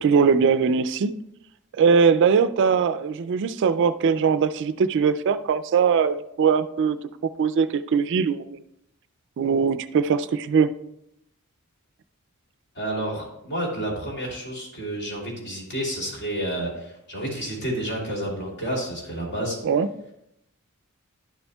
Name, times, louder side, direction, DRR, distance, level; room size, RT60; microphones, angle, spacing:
voice 1, 0.0-1.1 1.8-7.0 7.4-8.6 9.4-10.7 19.6-19.9, right 6 dB, 55° right, 13 dB, 0.3 m, -21 dB
voice 2, 12.7-19.6, right 1 dB, 50° left, -2 dB, 2.7 m, -30 dB
11.5 x 7.0 x 2.2 m, 0.80 s
head